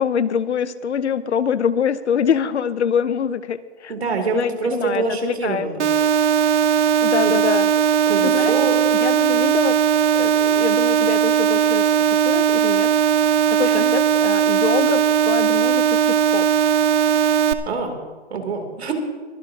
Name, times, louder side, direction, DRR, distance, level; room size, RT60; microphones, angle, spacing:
voice 1, 0.0-3.9 4.3-5.7 7.0-7.7 8.2-8.5 9.0-9.8 10.1-12.9 13.6-16.5, left 7 dB, 80° left, 16 dB, 0.8 m, -24 dB
voice 2, 3.9-5.9 7.2-7.4 8.1-8.8 13.6-13.9 17.6-17.9 18.3-18.9, right 4 dB, 65° right, 4 dB, 2.9 m, -25 dB
sound 1, 5.8-17.5, right 8 dB, 90° right, 1.0 m, -18 dB
22.5 x 12.5 x 2.8 m, 1.4 s
hypercardioid pair, 180°, 34 cm